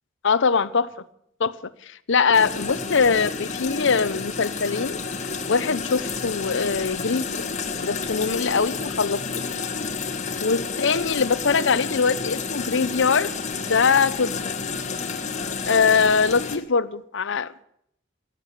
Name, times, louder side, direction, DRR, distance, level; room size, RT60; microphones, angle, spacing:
voice 1, 0.2-0.9 1.4-1.6 2.1-7.5 7.8-9.2 10.4-13.3 13.7-14.3 15.7-17.7, left 5 dB, 65° left, 15 dB, 0.8 m, -22 dB
sound 1, 2.3-16.6, left 5 dB, 35° left, 1.5 m, -30 dB
17.0 x 7.6 x 9.8 m, 0.72 s
head